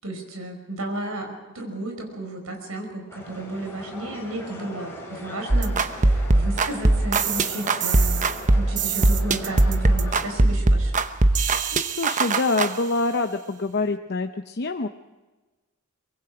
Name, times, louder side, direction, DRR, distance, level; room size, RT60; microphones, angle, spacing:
voice 1, 0.0-8.2 8.5-11.0, right 1 dB, 75° right, 3 dB, 5.5 m, -33 dB
sound 1, 3.1-10.3, left 1 dB, 10° left, 6.9 m, -40 dB
sound 2, 5.5-12.7, right 2 dB, 35° right, 0.9 m, -20 dB
voice 2, 11.7-14.9, left 3 dB, 50° left, 6 dB, 0.8 m, -26 dB
24.0 x 22.5 x 4.9 m, 1.2 s
head